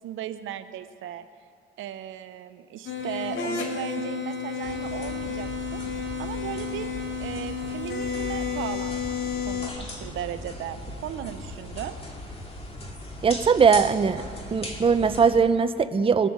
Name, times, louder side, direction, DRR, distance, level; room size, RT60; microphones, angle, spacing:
voice 1, 0.0-1.2 1.8-5.8 6.2-6.9 7.2-12.0, right 11 dB, 85° right, 10 dB, 0.8 m, -36 dB
sound 1, 2.9-9.7, left 6 dB, 80° left, 1.9 m, -31 dB
sound 2, 4.6-15.4, left 1 dB, 30° left, 2.3 m, -39 dB
voice 2, 13.2-14.2 14.5-16.3, right 6 dB, 25° right, 10 dB, 0.6 m, -20 dB
21.5 x 7.5 x 6.7 m, 2.3 s
cardioid pair, 90°, 20 cm